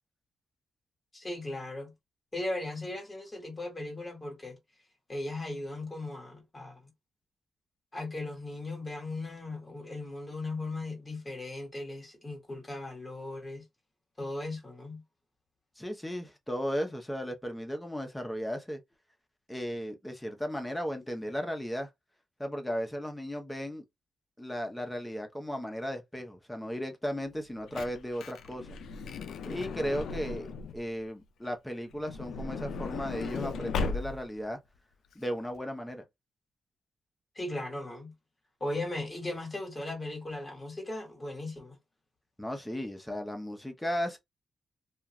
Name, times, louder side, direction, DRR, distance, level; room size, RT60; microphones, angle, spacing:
voice 1, 1.1-1.9 2.3-4.6 5.1-6.9 7.9-13.6 14.2-15.0 37.3-38.1 38.6-41.8, left 2 dB, 25° left, 1.2 m, -37 dB
voice 2, 15.8-18.8 19.5-21.9 22.4-23.8 24.4-28.7 29.5-30.5 30.7-34.6 35.1-36.0 42.4-44.2, equal, 10° left, 0.8 m, -35 dB
Truck / Door, 27.3-30.9 31.9-34.4 35.1-35.2 35.4-35.6, left 4 dB, 85° left, 0.3 m, -37 dB
2.4 x 2.4 x 3.0 m
cardioid pair, 80°, 0 cm